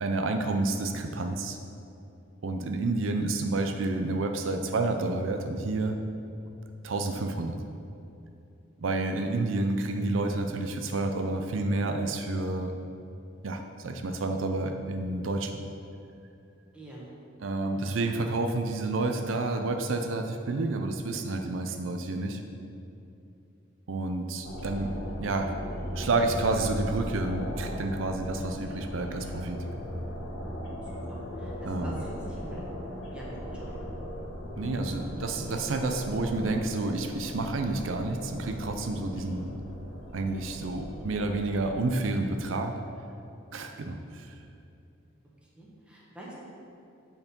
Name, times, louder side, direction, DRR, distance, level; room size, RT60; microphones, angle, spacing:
voice 1, 0.0-1.6 2.4-6.0 6.8-7.6 8.8-12.7 13.4-15.5 17.4-22.4 23.9-25.5 25.9-29.6 31.6-31.9 34.6-39.5 40.1-42.7 43.5-44.4, right 2 dB, 80° right, 5 dB, 0.5 m, -29 dB
voice 2, 16.7-17.0 31.1-32.7 33.1-33.9 45.6-46.3, right 1 dB, 5° right, -6 dB, 1.4 m, -46 dB
sound 1, 24.4-42.0, equal, 85° left, 1.2 m, -38 dB
8.0 x 4.6 x 5.3 m, 2.7 s
head